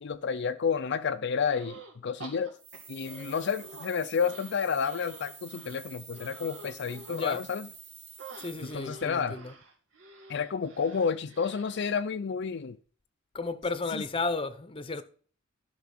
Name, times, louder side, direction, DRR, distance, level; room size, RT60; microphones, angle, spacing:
voice 1, 0.0-2.6 2.9-7.7 8.6-9.4 10.3-12.8 13.9-14.0, left 6 dB, 60° left, 0.5 m, -30 dB
sound 1, 1.4-1.9 2.2-3.9 4.2-7.3 8.2-11.9, right 3 dB, 70° right, 2.3 m, -48 dB
sound 2, 2.5-9.0, right 6 dB, 40° right, 3.2 m, -49 dB
voice 2, 7.1-7.4 8.4-9.5 13.3-15.0, left 3 dB, 25° left, 0.8 m, -33 dB
12.0 x 6.0 x 5.9 m
head